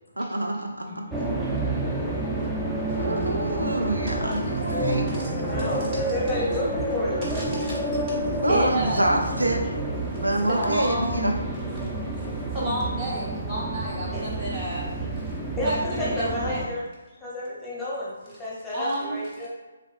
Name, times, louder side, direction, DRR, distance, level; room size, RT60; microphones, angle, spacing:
voice 1, 0.2-1.0 2.9-5.1 8.4-9.6 10.1-11.4, right 1 dB, 90° right, 2 dB, 0.5 m, -26 dB
voice 2, 0.8-1.1 1.4-1.5 4.1-4.4 5.2-7.2 7.8-8.4 14.1-14.4 15.0-15.1 15.5-16.8 17.1-19.5, left 1 dB, 10° left, -7 dB, 0.9 m, -31 dB
sound 1, 1.1-16.7, right 2 dB, 5° right, 0.4 m, -29 dB
voice 3, 5.1-5.9 7.3-9.0 10.5-11.3 11.7-12.0 12.5-14.9 15.6-16.6 18.7-19.2, right 1 dB, 25° right, -7 dB, 1.4 m, -32 dB
3.6 x 3.4 x 2.4 m, 1.1 s
figure-of-eight pair, 145°, 0 cm